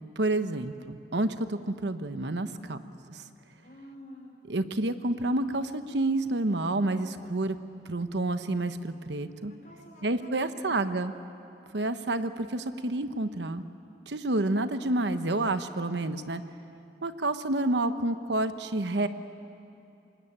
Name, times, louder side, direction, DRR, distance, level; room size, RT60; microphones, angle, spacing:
voice 1, 0.0-2.8 3.1-3.2 4.5-7.6 7.9-9.5 10.0-11.1 11.7-13.6 14.1-16.4 17.0-19.1, right 2 dB, 80° right, 10 dB, 1.0 m, -29 dB
voice 2, 2.4-2.8 3.6-4.4 9.6-10.9, left 1 dB, 45° left, 0 dB, 5.2 m, -49 dB
25.5 x 20.5 x 8.8 m, 2.8 s
head